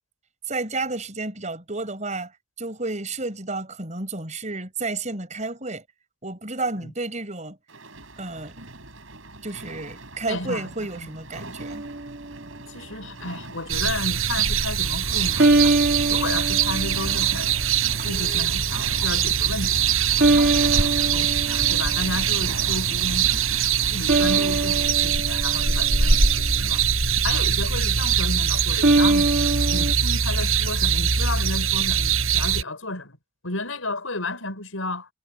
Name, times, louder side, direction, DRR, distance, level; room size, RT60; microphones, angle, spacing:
voice 1, 0.5-5.8 6.2-7.6 8.2-8.5 9.4-11.9, right 3 dB, 35° right, 6.3 m, -31 dB
sound 1, 7.7-24.9, right 2 dB, 75° right, 6.6 m, -41 dB
voice 2, 10.3-10.7 11.0-11.1 12.6-15.8 16.1-17.6 18.0-23.3 23.9-26.9 27.2-29.4 29.7-33.2 33.4-35.1, left 2 dB, 85° left, 6.0 m, -32 dB
sound 2, 11.6-12.4 15.4-17.4 18.0-18.5 20.2-22.2 24.1-26.5 28.8-29.9, right 2 dB, 55° right, 2.6 m, -23 dB
sound 3, 13.7-32.6, right 7 dB, 90° right, 6.3 m, -22 dB
head